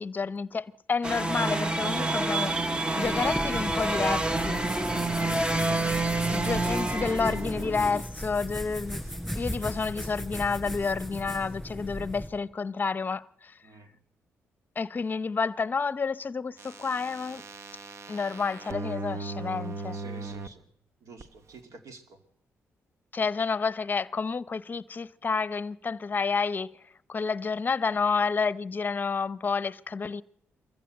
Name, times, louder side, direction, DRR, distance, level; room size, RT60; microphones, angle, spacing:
voice 1, 0.0-4.6 6.3-9.0 9.4-13.5 14.8-17.4 18.1-20.0 23.1-26.7 27.1-30.2, left 5 dB, 35° left, 0.7 m, -30 dB
sound 1, 1.0-8.0, right 2 dB, 20° right, 0.9 m, -28 dB
sound 2, 3.0-12.3, equal, ahead, 7.2 m, -37 dB
sound 3, 16.6-20.5 21.2-21.3, right 3 dB, 60° right, 1.0 m, -38 dB
voice 2, 19.9-20.7 21.0-22.2, right 3 dB, 80° right, 2.4 m, -49 dB
22.5 x 14.5 x 7.9 m
cardioid pair, 85°, 5 cm